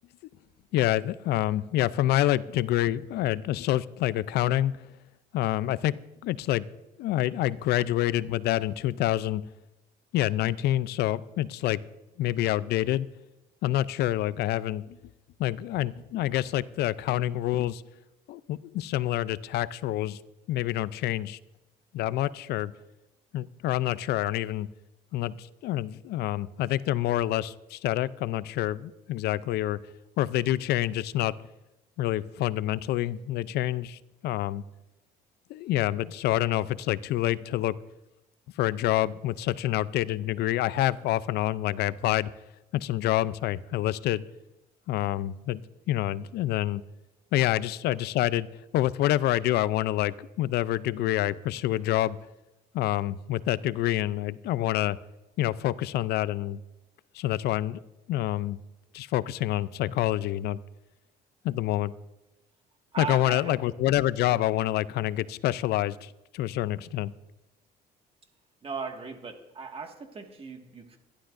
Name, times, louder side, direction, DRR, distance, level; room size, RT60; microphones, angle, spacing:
voice 1, 0.7-4.7 5.3-6.0 6.2-6.6 7.0-9.4 10.1-11.8 12.2-13.1 13.6-15.0 15.4-17.8 18.3-20.2 20.5-21.4 21.9-22.7 23.3-24.7 25.1-29.8 30.2-31.3 32.0-34.6 35.5-37.8 38.6-42.3 42.7-44.2 44.9-45.6 45.9-46.8 47.3-48.5 48.7-52.2 52.7-55.0 55.4-56.6 57.1-57.8 58.1-58.6 58.9-60.6 61.4-61.9 63.0-67.1, left 14 dB, 75° left, 17 dB, 0.5 m, -27 dB
voice 2, 62.9-63.6 68.6-71.0, right 5 dB, 35° right, 4 dB, 1.8 m, -37 dB
25.0 x 12.0 x 2.6 m, 0.99 s
cardioid pair, 110°, 17 cm